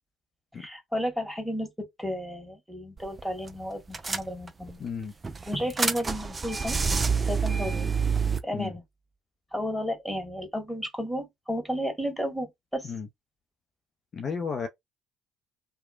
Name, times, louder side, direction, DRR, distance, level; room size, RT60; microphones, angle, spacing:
voice 1, 0.6-1.7 2.0-4.8 5.5-6.8 7.3-7.9 8.4-8.8 9.5-12.9, equal, 5° right, 1.6 m, -32 dB
sound 1, 3.0-3.2 3.5-3.6 3.9-4.7 5.2-8.4, right 5 dB, 25° right, 0.4 m, -27 dB
voice 2, 4.8-5.1 8.5-8.7 12.9-13.1 14.1-14.7, left 5 dB, 40° left, 0.5 m, -33 dB
2.9 x 2.1 x 2.4 m
figure-of-eight pair, 55°, 0 cm